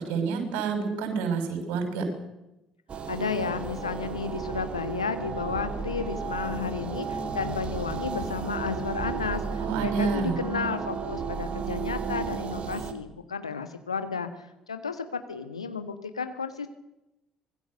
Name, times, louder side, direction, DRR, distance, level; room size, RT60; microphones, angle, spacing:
voice 1, 0.0-2.1 9.6-10.4, right 5 dB, 60° right, 6 dB, 6.2 m, -28 dB
sound 1, 2.9-12.9, right 6 dB, 40° right, 3.0 m, -33 dB
voice 2, 3.1-14.3 14.7-16.7, left 5 dB, 80° left, 9 dB, 1.6 m, -32 dB
25.0 x 21.0 x 6.7 m, 0.93 s
figure-of-eight pair, 50°, 3 cm